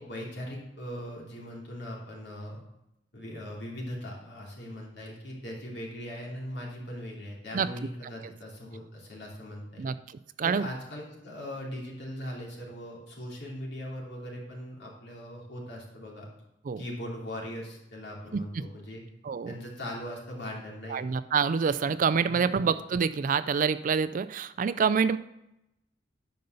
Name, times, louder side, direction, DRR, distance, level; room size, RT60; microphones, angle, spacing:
voice 1, 0.0-2.6 3.1-9.8 10.4-16.3 16.8-19.0 19.5-21.0 22.3-22.6, equal, 65° left, -2 dB, 3.2 m, -40 dB
voice 2, 9.8-10.7 16.7-16.8 18.3-18.6 19.2-19.6 20.9-25.2, right 6 dB, 45° right, 14 dB, 0.4 m, -27 dB
10.5 x 5.4 x 6.7 m, 0.86 s
head